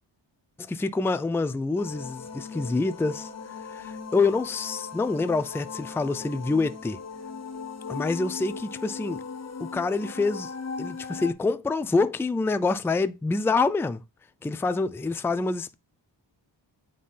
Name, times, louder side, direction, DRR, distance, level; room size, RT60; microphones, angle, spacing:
voice 1, 0.7-3.3 3.7-7.0 7.9-9.2 9.6-10.5 10.8-14.0 14.4-15.7, left 3 dB, 5° left, 0.3 m, -26 dB
sound 1, 1.8-11.3, left 5 dB, 35° left, 1.3 m, -38 dB
8.4 x 3.8 x 5.6 m
wide cardioid pair, 125°, 46 cm